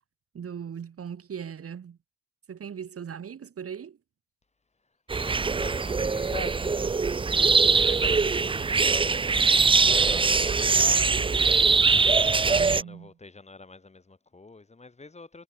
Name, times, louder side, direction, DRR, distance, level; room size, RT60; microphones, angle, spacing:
voice 1, 0.3-2.0 2.5-4.0 12.5-13.1, right 7 dB, 50° right, 3.5 m, -39 dB
voice 2, 5.1-15.4, left 3 dB, 20° left, 4.7 m, -45 dB
sound 1, 5.1-12.8, right 4 dB, 15° right, 0.5 m, -22 dB
sound 2, 6.0-8.6 8.9-10.7, left 13 dB, 80° left, 5.1 m, -57 dB
cardioid pair, 90°, 30 cm